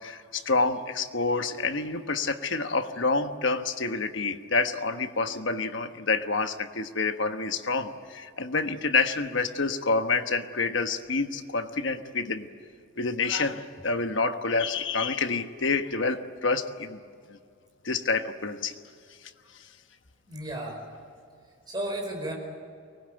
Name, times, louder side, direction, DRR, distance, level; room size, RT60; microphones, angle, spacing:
voice 1, 0.0-12.5 13.0-17.0 17.3-17.4 17.8-18.8 19.6-19.7, left 4 dB, 60° left, 8 dB, 1.2 m, -28 dB
voice 2, 20.3-20.8 21.7-22.3, right 1 dB, 20° right, 0 dB, 5.3 m, -33 dB
24.0 x 19.5 x 9.0 m, 2.3 s
head